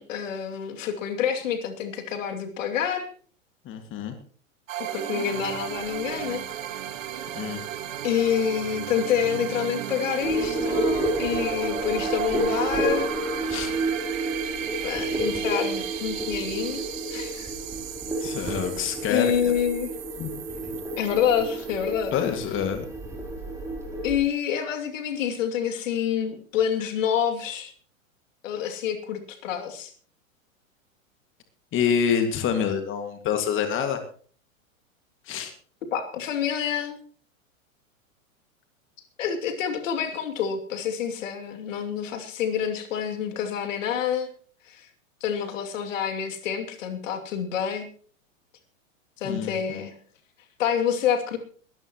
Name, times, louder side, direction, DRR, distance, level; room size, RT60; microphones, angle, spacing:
voice 1, 0.0-3.1 4.8-6.5 8.0-13.1 14.8-16.8 17.1-17.5 18.4-18.6 19.1-19.9 20.9-22.1 24.0-27.7 28.4-29.9 35.9-37.0 39.2-44.3 44.7-44.9 45.2-47.9 49.2-49.9 50.6-51.4, left 8 dB, 65° left, 5 dB, 2.7 m, -27 dB
voice 2, 3.7-4.2 7.4-7.6 13.5-13.7 18.2-19.5 20.2-20.3 22.1-22.9 31.7-34.0 35.3-35.5 49.2-49.8, left 8 dB, 30° left, 7 dB, 2.0 m, -27 dB
sound 1, 4.7-23.2, right 10 dB, 70° right, 2.0 m, -35 dB
sound 2, 10.2-24.2, right 1 dB, 5° right, 3.7 m, -30 dB
22.0 x 13.0 x 3.0 m, 0.43 s
hypercardioid pair, 105°, 41 cm